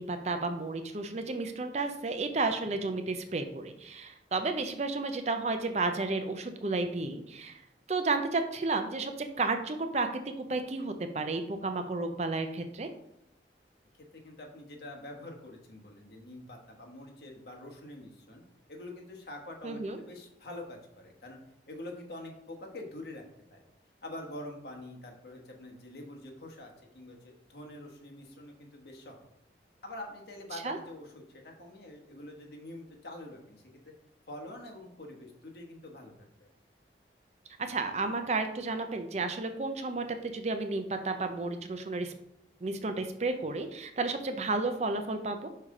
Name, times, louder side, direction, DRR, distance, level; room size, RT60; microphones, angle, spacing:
voice 1, 0.0-7.6 7.9-12.9 19.6-20.0 30.6-30.8 37.6-42.1 42.6-45.5, right 3 dB, 40° right, 7 dB, 0.5 m, -32 dB
voice 2, 14.1-18.4 18.7-21.4 21.7-23.2 23.5-23.6 24.0-29.2 29.8-31.1 31.4-33.9 34.3-36.3, left 1 dB, 70° left, 1 dB, 1.2 m, -45 dB
5.6 x 4.8 x 3.7 m, 0.83 s
head